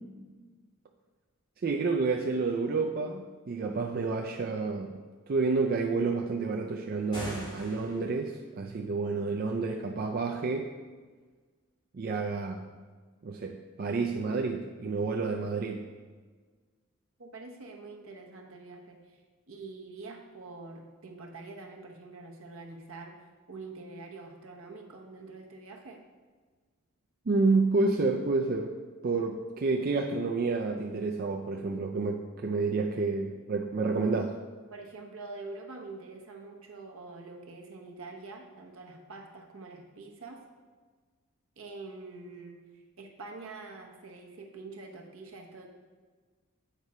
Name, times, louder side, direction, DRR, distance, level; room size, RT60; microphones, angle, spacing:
voice 1, 1.6-5.0 5.3-10.7 11.9-12.6 13.2-15.9 27.3-28.7 29.0-34.4, right 3 dB, 45° right, 1 dB, 0.4 m, -29 dB
sound 1, 7.0-8.3, equal, 20° left, 1.9 m, -41 dB
voice 2, 17.2-23.2 23.5-26.0 34.7-40.4 41.6-42.6 43.0-45.7, right 3 dB, 75° right, 2 dB, 1.0 m, -45 dB
8.1 x 4.8 x 4.2 m, 1.4 s
head